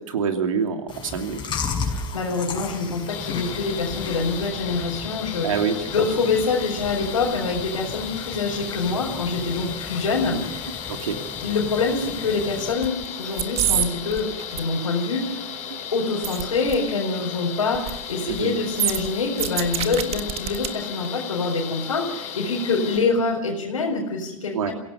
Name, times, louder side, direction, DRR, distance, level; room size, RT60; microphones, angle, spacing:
voice 1, 0.0-1.4 5.4-5.7 10.9-11.2 18.3-18.6 24.5-24.7, right 6 dB, 80° right, 5 dB, 2.9 m, -25 dB
Chewing mastication, 0.9-12.7, left 5 dB, 30° left, 6.0 m, -35 dB
voice 2, 1.8-5.5 5.9-10.9 11.4-15.4 15.9-24.7, left 4 dB, 90° left, -4 dB, 4.4 m, -25 dB
sound 1, 3.1-23.0, left 8 dB, 45° left, 5.3 m, -35 dB
sound 2, 12.8-13.1 13.3-13.9 14.1-14.6 16.2-16.4 16.7-16.8 17.7-18.0 18.3-18.4 18.8-20.7 21.1-21.2, right 11 dB, 35° right, 1.7 m, -25 dB
28.0 x 17.0 x 5.7 m, 0.82 s
hypercardioid pair, 95°, 17 cm